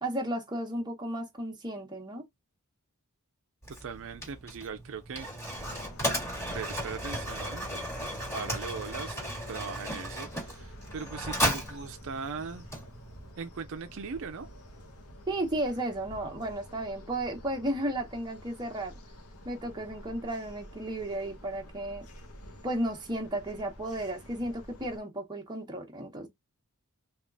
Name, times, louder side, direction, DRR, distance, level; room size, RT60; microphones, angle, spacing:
voice 1, 0.0-2.2 15.3-19.0 19.4-22.1 22.6-26.3, right 1 dB, 20° right, 0.9 m, -34 dB
Mechanisms, 3.6-13.3, equal, 10° left, 1.6 m, -35 dB
voice 2, 3.7-5.3 6.5-7.7 8.3-9.2 9.5-12.7 13.4-14.5, right 5 dB, 60° right, 0.5 m, -39 dB
sound 1, 5.5-25.0, equal, 75° left, 1.0 m, -49 dB
3.6 x 2.3 x 3.8 m
head